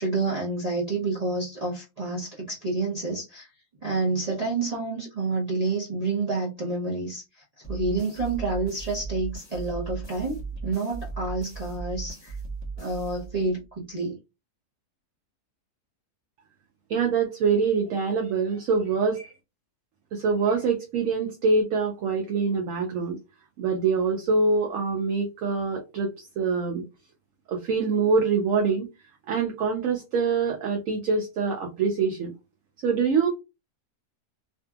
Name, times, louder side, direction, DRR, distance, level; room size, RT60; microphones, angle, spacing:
voice 1, 0.0-3.5 3.8-7.2 7.6-12.3 12.8-14.2, right 3 dB, 45° right, 0.5 m, -29 dB
sound 1, 7.6-13.7, right 4 dB, 25° left, 0.6 m, -37 dB
voice 2, 16.9-19.3 20.1-23.2 23.6-26.8 27.5-28.9 29.3-32.3 32.8-33.3, right 4 dB, 70° right, 0.8 m, -25 dB
2.6 x 2.5 x 2.3 m
omnidirectional pair, 1.7 m